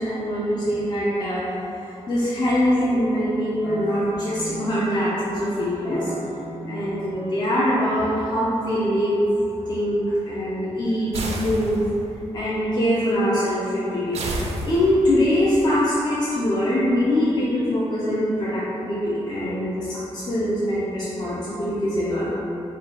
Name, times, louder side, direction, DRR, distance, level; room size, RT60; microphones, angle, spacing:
voice 1, 0.0-1.5 2.1-6.1 6.6-9.3 9.7-11.8 12.3-22.3, equal, 35° left, -8 dB, 0.4 m, -23 dB
sound 1, 2.4-5.4 5.8-9.7, equal, 75° left, 1.2 m, -38 dB
sound 2, 11.1-12.1 14.1-15.2, right 2 dB, 65° right, 0.4 m, -30 dB
3.1 x 2.3 x 4.0 m, 3.0 s
wide cardioid pair, 165°, 11 cm